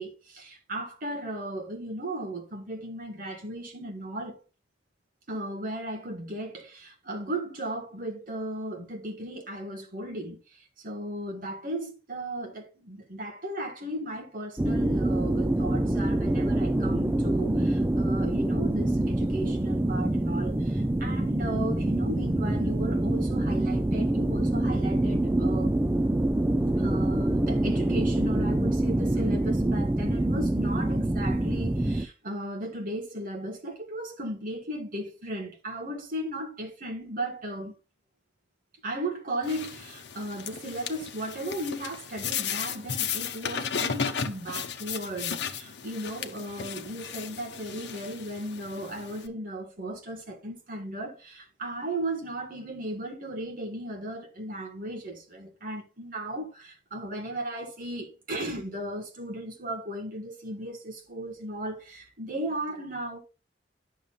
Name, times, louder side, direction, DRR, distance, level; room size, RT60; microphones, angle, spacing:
voice 1, 0.0-4.4 5.3-25.8 26.8-37.7 38.8-63.2, right 1 dB, 50° right, 1.7 m, -36 dB
sound 1, 14.6-32.1, right 1 dB, 15° right, 0.4 m, -26 dB
sound 2, 39.4-49.3, left 7 dB, 70° left, 0.8 m, -35 dB
10.5 x 6.5 x 2.4 m
head